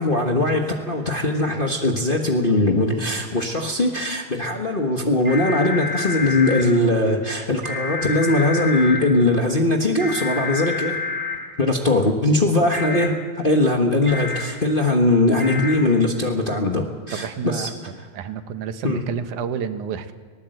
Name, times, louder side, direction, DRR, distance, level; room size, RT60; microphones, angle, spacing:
voice 1, 0.0-11.0 11.6-17.7 18.8-19.0, left 2 dB, 50° left, 1 dB, 0.6 m, -20 dB
sound 1, 5.2-6.6 7.6-9.0 10.0-11.3 12.7-13.1 14.1-14.4 15.4-15.7, left 4 dB, 20° right, 4.3 m, -28 dB
voice 2, 17.1-17.7 18.1-20.1, right 7 dB, 85° right, 9 dB, 2.5 m, -29 dB
19.5 x 19.0 x 7.8 m, 1.5 s
omnidirectional pair, 3.4 m